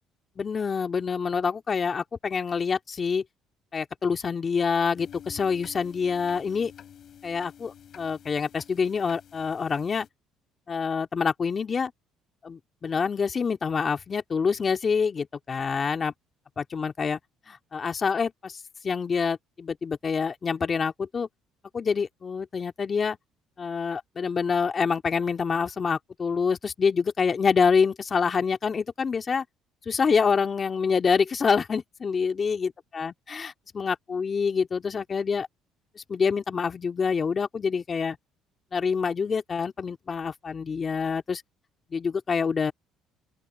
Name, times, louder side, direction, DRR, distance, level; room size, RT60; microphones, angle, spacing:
voice 1, 0.4-3.2 3.7-6.7 7.2-10.1 10.7-11.9 12.4-16.1 16.6-17.2 17.5-18.6 18.8-21.3 21.7-23.2 23.6-29.4 29.9-35.5 36.0-38.2 38.7-41.4 41.9-42.7, left 5 dB, 35° left, 2.5 m, -26 dB
sound 1, 5.0-10.1, left 9 dB, 55° left, 3.7 m, -49 dB
open air
supercardioid pair, 85°, 0 cm